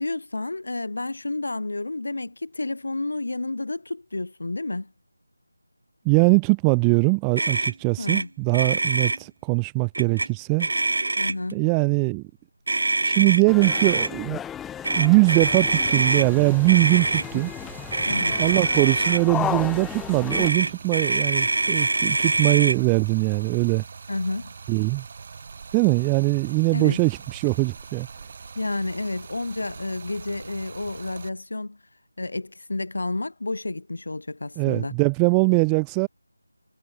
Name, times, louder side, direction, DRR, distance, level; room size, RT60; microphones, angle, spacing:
voice 1, 0.0-4.9 8.0-8.3 11.2-11.6 18.1-18.4 24.1-24.5 26.7-27.0 28.6-31.8 32.2-34.9, left 2 dB, 65° left, 3.7 m, -30 dB
voice 2, 6.0-10.7 11.5-12.2 13.0-14.4 15.0-17.5 18.4-23.8 24.7-25.0 25.7-28.1 34.6-36.1, right 40 dB or more, 10° right, 0.5 m, -21 dB
Motor vehicle (road), 7.4-7.7 8.1-8.2 8.5-9.2 9.9-10.3 10.6-11.5 12.7-14.1 14.8-16.3 16.7-17.2 17.9-19.2 20.3-22.8, right 2 dB, 65° right, 2.1 m, -24 dB
sound 1, 13.5-20.5, left 9 dB, 5° left, 1.9 m, -34 dB
Stream, 15.2-31.3, right 5 dB, 35° right, 5.4 m, -43 dB
figure-of-eight pair, 165°, 0 cm